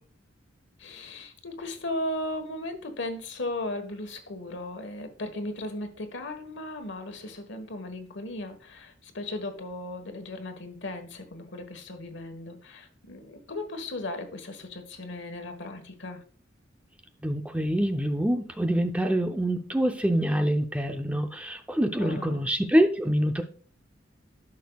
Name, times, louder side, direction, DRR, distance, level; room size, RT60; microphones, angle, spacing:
voice 1, 0.8-16.2 22.0-22.5, left 1 dB, 65° left, 7 dB, 1.3 m, -36 dB
voice 2, 17.2-23.4, equal, 5° right, 6 dB, 0.5 m, -25 dB
11.5 x 6.4 x 2.3 m, 0.43 s
head